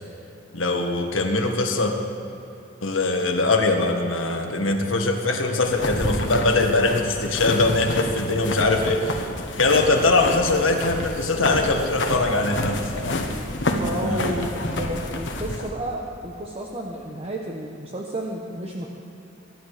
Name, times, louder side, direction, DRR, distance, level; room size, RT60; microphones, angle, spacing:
voice 1, 0.5-1.9 2.8-9.2 9.6-13.2 13.9-14.5, left 2 dB, 85° left, 3 dB, 1.8 m, -22 dB
sound 1, 5.6-15.7, left 2 dB, 65° left, 1.5 m, -29 dB
voice 2, 13.7-18.9, right 1 dB, 30° right, -1 dB, 1.1 m, -32 dB
24.0 x 11.0 x 5.0 m, 2.9 s
head